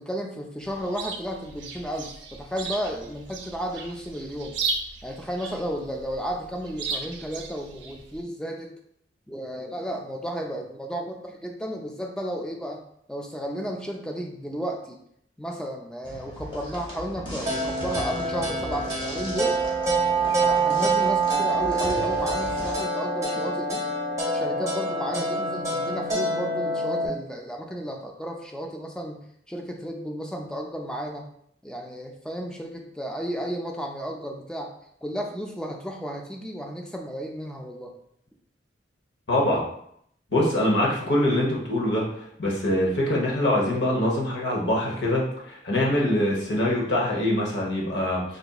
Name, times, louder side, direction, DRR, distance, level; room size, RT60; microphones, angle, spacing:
voice 1, 0.0-4.6 5.0-8.7 9.3-12.8 13.1-15.0 15.4-19.6 20.4-23.8 24.3-29.2 29.5-31.3 31.6-34.7 35.0-37.9, equal, 5° left, 1 dB, 0.4 m, -33 dB
Chirp tweet, 0.6-8.2, right 4 dB, 85° right, 0.5 m, -36 dB
sound 1, 16.0-22.7, equal, 30° left, 0.9 m, -38 dB
sound 2, 17.5-27.1, right 2 dB, 15° right, 0.9 m, -26 dB
voice 2, 39.3-39.6 40.3-42.0 42.4-45.2 45.5-48.2, left 1 dB, 75° left, -3 dB, 0.9 m, -23 dB
3.9 x 2.6 x 2.3 m, 0.70 s
head